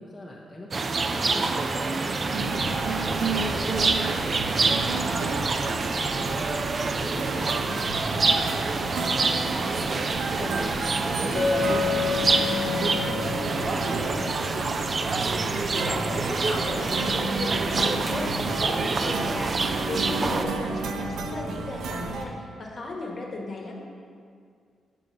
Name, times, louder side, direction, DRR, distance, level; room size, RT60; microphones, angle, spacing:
voice 1, 0.0-10.8 11.2-14.5, left 1 dB, 15° left, -3 dB, 0.5 m, -40 dB
sound 1, 0.7-20.5, right 3 dB, 35° right, 0.3 m, -27 dB
sound 2, 2.3-22.3, right 3 dB, 90° right, 0.5 m, -32 dB
Chink clink, 11.3-15.4, left 6 dB, 65° left, 0.7 m, -30 dB
voice 2, 15.7-23.8, left 2 dB, 40° left, -1 dB, 1.0 m, -35 dB
5.7 x 5.4 x 5.0 m, 2.2 s
wide cardioid pair, 140°, 0 cm